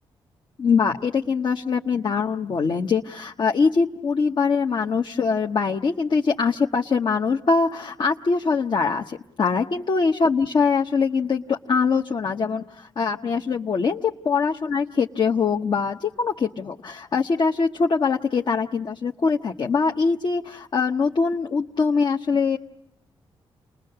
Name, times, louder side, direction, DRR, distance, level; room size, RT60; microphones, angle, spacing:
voice 1, 0.6-22.6, left 5 dB, 55° left, 2 dB, 0.9 m, -23 dB
29.5 x 21.0 x 6.7 m, 0.87 s
cardioid pair, 80°, 10 cm